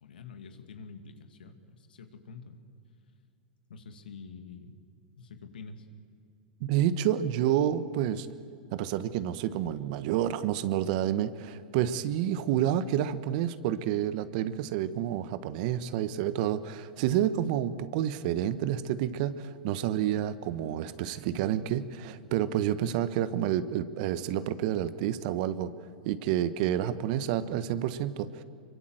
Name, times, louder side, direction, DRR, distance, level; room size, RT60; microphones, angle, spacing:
voice 1, 0.0-2.6 3.7-4.7 5.2-5.9, left 5 dB, 85° left, 7 dB, 2.4 m, -47 dB
voice 2, 6.6-8.3 8.7-25.7 26.0-28.4, right 11 dB, 60° right, 13 dB, 1.4 m, -29 dB
25.5 x 23.5 x 8.0 m, 2.5 s
hypercardioid pair, 110°, 5 cm